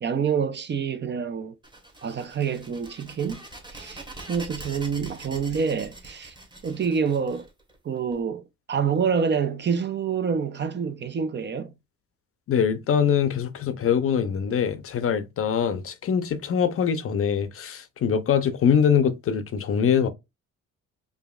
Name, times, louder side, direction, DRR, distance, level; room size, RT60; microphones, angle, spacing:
voice 1, 0.0-1.5 2.0-3.4 3.7-6.3 6.6-7.5 7.8-11.7, right 6 dB, 35° right, 0.5 m, -27 dB
sound 1, 1.6-8.1, right 2 dB, 15° right, 1.1 m, -43 dB
voice 2, 12.5-20.1, left 7 dB, 50° left, 0.6 m, -23 dB
4.9 x 2.6 x 2.3 m
cardioid pair, 90°, 30 cm